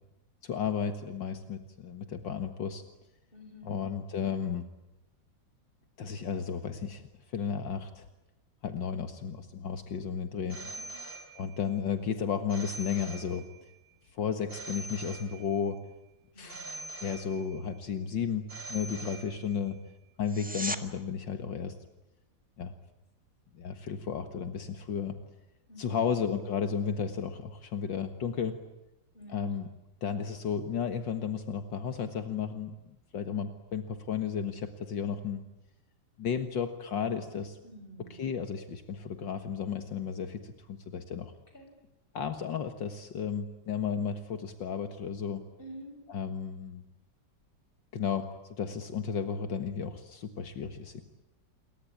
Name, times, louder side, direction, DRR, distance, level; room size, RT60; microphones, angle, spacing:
voice 1, 0.4-2.8 3.6-4.6 6.0-7.0 7.3-8.1 8.6-10.6 11.4-13.4 14.1-15.8 16.4-18.4 18.7-19.8 20.2-21.8 22.6-22.7 23.6-25.2 25.8-28.6 29.3-29.7 30.0-32.7 33.1-35.4 36.2-37.6 38.1-41.3 42.1-45.4 46.1-46.8 47.9-51.0, left 7 dB, 75° left, 8 dB, 2.2 m, -33 dB
voice 2, 3.3-3.7 10.6-11.0 16.3-16.9 19.1-19.8 25.7-26.1 29.1-29.5 37.6-38.2 41.5-41.7 45.6-46.0, equal, 25° left, 5 dB, 6.5 m, -49 dB
Telephone, 10.5-11.8 12.5-13.8 14.5-15.8 16.5-17.8 18.5-19.7, right 2 dB, 75° right, 7.5 m, -44 dB
sound 1, 20.2-20.8 32.2-32.3, right 1 dB, 5° right, 1.6 m, -35 dB
28.5 x 23.5 x 8.6 m, 0.97 s
omnidirectional pair, 2.0 m